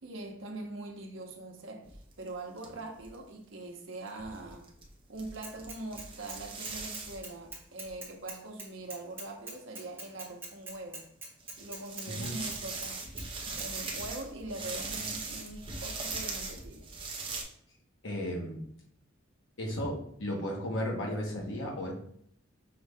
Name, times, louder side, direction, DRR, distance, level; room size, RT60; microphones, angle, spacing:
voice 1, 0.0-4.7 5.1-11.1 11.6-13.1 13.5-16.9, right 2 dB, 70° right, 0.9 m, -43 dB
sound 1, 1.8-2.3 2.6-2.7 2.9-3.1 4.1-8.0 9.5-9.6 10.4-10.5 11.4-17.4, right 3 dB, 25° right, 0.8 m, -40 dB
Bicycle / Mechanisms, 5.4-6.4 6.6-12.9 13.2-13.3 13.6-13.7, right 2 dB, 10° right, 1.1 m, -43 dB
voice 2, 12.1-12.4 18.0-18.6 19.6-21.9, equal, 70° left, 1.3 m, -34 dB
5.7 x 2.8 x 3.4 m
head